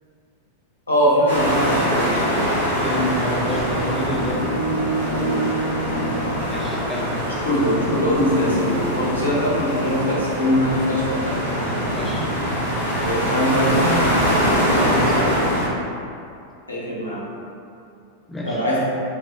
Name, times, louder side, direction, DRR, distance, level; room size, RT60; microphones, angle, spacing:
voice 1, 0.9-2.1 5.1-5.3 7.4-11.3 13.0-14.0 16.7-17.2 18.5-18.8, equal, 80° left, -6 dB, 0.6 m, -22 dB
sound 1, 1.3-15.7, equal, 85° right, 0.7 m, -23 dB
voice 2, 2.8-4.6 6.4-7.1 11.9-12.3 15.1-15.4 18.3-18.6, left 1 dB, 10° left, -5 dB, 0.5 m, -29 dB
sound 2, 3.5-7.5, right 2 dB, 50° right, 0.5 m, -28 dB
3.2 x 2.0 x 2.3 m, 2.5 s
figure-of-eight pair, 90°, 0 cm